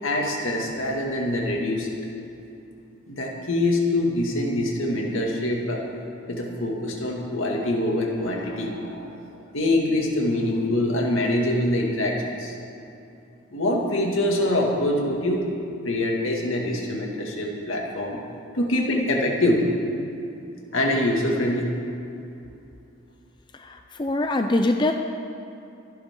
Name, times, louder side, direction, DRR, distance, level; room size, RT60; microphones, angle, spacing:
voice 1, 0.0-1.9 3.1-5.8 6.3-9.3 9.5-12.5 13.5-15.5 15.8-18.2 18.5-19.6 20.7-21.7, left 1 dB, 75° left, -1 dB, 2.2 m, -24 dB
voice 2, 23.6-24.9, left 2 dB, 20° left, 5 dB, 0.4 m, -23 dB
24.5 x 10.5 x 3.8 m, 2.7 s
head